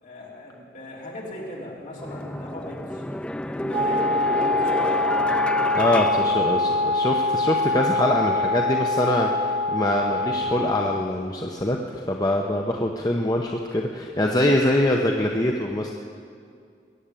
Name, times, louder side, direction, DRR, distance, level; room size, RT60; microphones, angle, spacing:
voice 1, 0.0-3.0 3.4-5.1, left 1 dB, 45° left, -4 dB, 3.6 m, -39 dB
sound 1, 1.3-1.4 2.0-7.2, left 1 dB, 5° left, 0.3 m, -30 dB
Wind instrument woodwind instrument, 3.7-11.1, left 2 dB, 35° right, 0.8 m, -24 dB
voice 2, 5.7-15.9, left 1 dB, 20° left, 1 dB, 0.7 m, -24 dB
20.0 x 8.0 x 8.9 m, 2.3 s
head